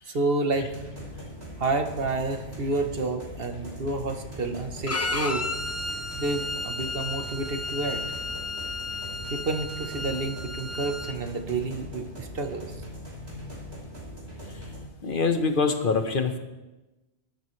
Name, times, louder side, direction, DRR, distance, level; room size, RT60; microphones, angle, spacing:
voice 1, 0.1-0.7 1.6-5.5 6.1-8.0 9.3-12.7 13.9-14.0, right 3 dB, 60° right, 6 dB, 1.3 m, -29 dB
sound 1, 0.5-14.8, equal, 35° right, 3.3 m, -41 dB
Bowed string instrument, 4.9-11.1, left 2 dB, 20° left, 0.4 m, -33 dB
voice 2, 15.0-16.4, left 4 dB, 50° left, 7 dB, 1.3 m, -24 dB
19.0 x 13.0 x 3.2 m, 1.1 s
omnidirectional pair, 1.1 m